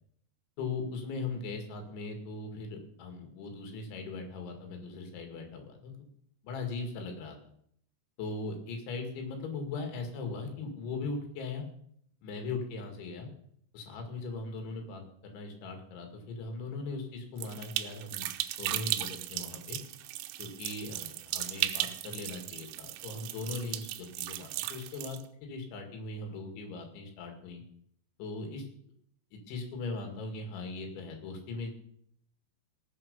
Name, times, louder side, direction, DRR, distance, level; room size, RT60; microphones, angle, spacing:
voice 1, 0.6-5.9 6.4-7.4 8.2-11.7 12.2-13.3 13.7-18.3 18.6-19.8 20.4-27.6 28.2-28.7 29.3-31.7, left 3 dB, 70° left, 4 dB, 4.5 m, -39 dB
sound 1, 17.4-25.2, right 15 dB, 80° right, 2.9 m, -36 dB
18.5 x 7.6 x 5.3 m, 0.66 s
omnidirectional pair, 5.6 m